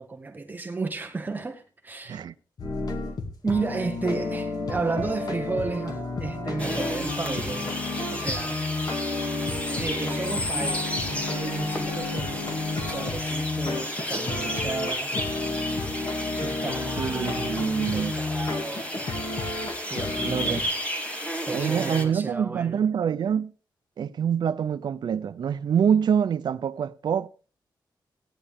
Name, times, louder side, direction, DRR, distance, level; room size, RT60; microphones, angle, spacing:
voice 1, 0.0-2.2 3.4-7.7 8.1-8.6 9.7-15.1 16.3-17.5 17.8-19.2 19.9-20.7 21.5-22.8, right 3 dB, 20° right, 1.1 m, -33 dB
sound 1, 2.6-20.6, left 3 dB, 50° left, 2.3 m, -31 dB
sound 2, 6.6-22.0, equal, 15° left, 2.4 m, -33 dB
voice 2, 17.0-18.1 20.2-20.6 21.5-23.5 24.0-27.3, right 8 dB, 60° right, 0.5 m, -25 dB
17.0 x 9.8 x 3.5 m
wide cardioid pair, 180°, 8 cm